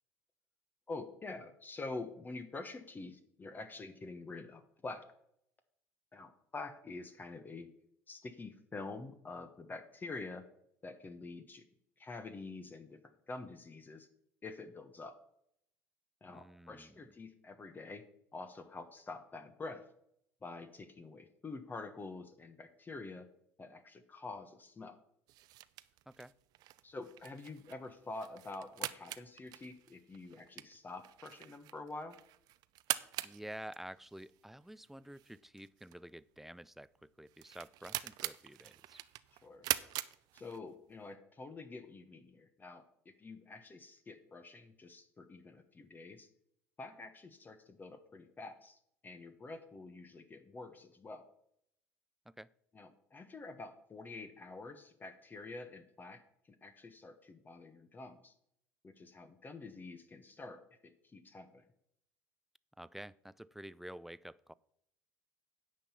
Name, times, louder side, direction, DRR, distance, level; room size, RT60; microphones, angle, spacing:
voice 1, 0.9-5.0 6.1-7.7 8.1-10.4 10.8-11.6 12.0-13.0 13.3-14.1 14.4-15.1 16.2-18.1 18.3-19.8 20.4-23.3 23.6-25.0 26.8-32.2 39.3-39.7 40.3-46.3 46.8-48.8 49.0-51.2 52.7-56.2 56.5-58.3 58.8-61.6, left 3 dB, 25° left, 9 dB, 1.2 m, -47 dB
voice 2, 16.3-17.0 26.1-26.3 33.2-39.0 52.3-52.5 62.8-64.5, right 1 dB, 5° right, 19 dB, 0.4 m, -50 dB
sound 1, 25.3-40.9, right 16 dB, 55° right, 0.5 m, -44 dB
9.9 x 5.7 x 7.0 m, 0.72 s
hypercardioid pair, 70°, 8 cm